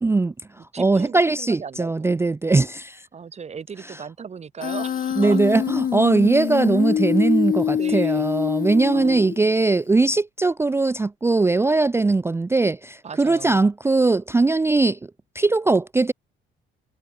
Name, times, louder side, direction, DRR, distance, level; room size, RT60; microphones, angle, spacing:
voice 1, 0.0-0.3 0.8-3.0 5.2-15.0 15.4-16.1, right 3 dB, 15° right, 0.3 m, -20 dB
voice 2, 0.6-2.1 3.1-5.4 7.5-8.3 8.9-9.4 13.0-13.6, right 6 dB, 35° right, 0.9 m, -37 dB
Human voice, 4.6-9.6, left 9 dB, 45° left, 0.6 m, -24 dB
cardioid pair, 90°, 20 cm